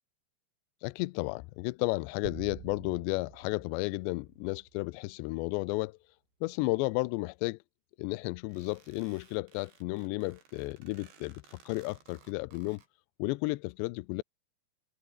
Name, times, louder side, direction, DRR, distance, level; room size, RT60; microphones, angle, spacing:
voice 1, 0.8-6.0 6.4-7.6 8.0-12.8 13.2-14.2, left 23 dB, 80° left, 2.7 m, -33 dB
sound 1, 2.3-4.9, right 22 dB, 80° right, 2.7 m, -49 dB
sound 2, 8.5-12.9, right 7 dB, 65° right, 6.6 m, -60 dB
omnidirectional pair, 5.4 m